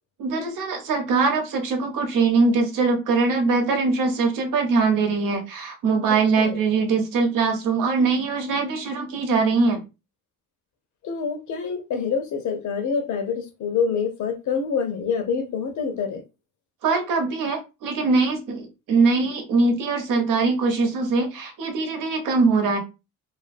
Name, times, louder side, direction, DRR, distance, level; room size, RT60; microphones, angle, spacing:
voice 1, 0.2-9.8 16.8-22.8, right 4 dB, 80° right, 0.9 m, -22 dB
voice 2, 11.0-16.2, left 6 dB, 65° left, 0.8 m, -26 dB
2.5 x 2.5 x 2.5 m
cardioid pair, 100°, 32 cm